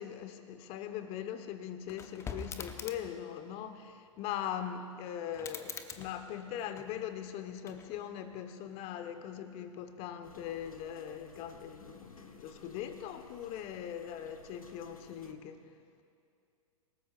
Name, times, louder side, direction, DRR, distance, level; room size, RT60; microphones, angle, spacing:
voice 1, 0.0-15.6, left 9 dB, 35° left, 8 dB, 1.3 m, -41 dB
sound 1, 1.9-3.2 5.3-7.1 7.6-8.3, left 5 dB, 15° left, 0.8 m, -45 dB
sound 2, 10.2-15.3, left 3 dB, 85° left, 1.1 m, -56 dB
28.0 x 18.5 x 2.6 m, 2.4 s
figure-of-eight pair, 105°, 18 cm